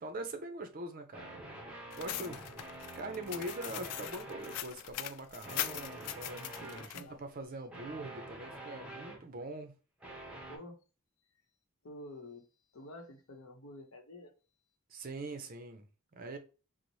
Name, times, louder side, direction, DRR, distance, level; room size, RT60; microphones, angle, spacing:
voice 1, 0.0-1.6 1.9-2.4 2.9-9.7 14.9-15.9 16.1-16.4, right 2 dB, 40° right, 0.5 m, -43 dB
sound 1, 1.1-4.6 5.4-7.0 7.7-9.4 10.0-10.6, right 1 dB, 5° right, 0.8 m, -47 dB
sound 2, 1.9-7.0, left 12 dB, 85° left, 0.3 m, -41 dB
voice 2, 2.0-2.6 4.7-4.9 6.6-7.2 10.4-10.8 11.8-12.4 12.7-14.3, left 1 dB, 70° left, 0.8 m, -50 dB
3.9 x 2.0 x 3.0 m
head